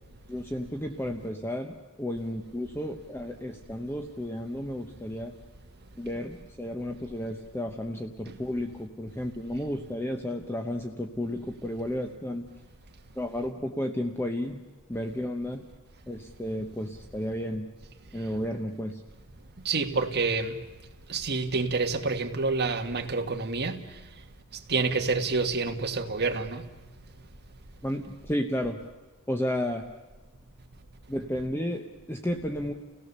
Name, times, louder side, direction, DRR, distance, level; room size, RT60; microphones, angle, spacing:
voice 1, 0.3-5.3 6.0-12.5 13.2-14.6 14.9-15.6 16.1-17.7 18.1-19.0 27.8-28.8 29.3-29.9 31.1-32.7, left 1 dB, 10° left, 0.9 m, -32 dB
voice 2, 19.6-20.6 21.1-23.8 24.7-26.6, right 4 dB, 50° right, 1.5 m, -28 dB
30.0 x 17.0 x 6.8 m
head